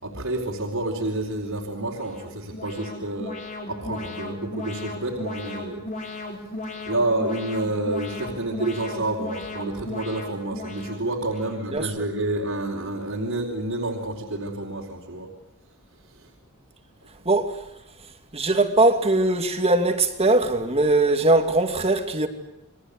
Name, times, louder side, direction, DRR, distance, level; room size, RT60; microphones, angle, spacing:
voice 1, 0.0-5.8 6.2-6.4 6.9-15.3 16.1-16.3, right 2 dB, 70° right, 4.4 m, -29 dB
Alarm, 1.9-11.8, left 2 dB, 35° left, 5.0 m, -36 dB
voice 2, 18.3-22.3, right 2 dB, 30° right, 2.4 m, -20 dB
29.0 x 23.0 x 8.4 m
head